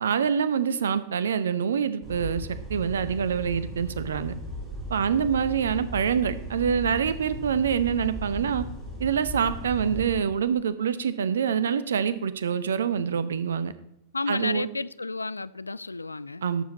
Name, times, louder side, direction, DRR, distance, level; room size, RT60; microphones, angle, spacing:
voice 1, 0.0-4.3 4.9-8.7 9.0-13.7 14.3-14.7 16.4-16.6, right 7 dB, 65° right, 0.8 m, -26 dB
sound 1, 2.0-10.2, equal, 25° right, 3.1 m, -37 dB
voice 2, 14.1-16.4, left 3 dB, 80° left, 0.3 m, -32 dB
12.0 x 7.4 x 4.0 m
figure-of-eight pair, 90°, 0 cm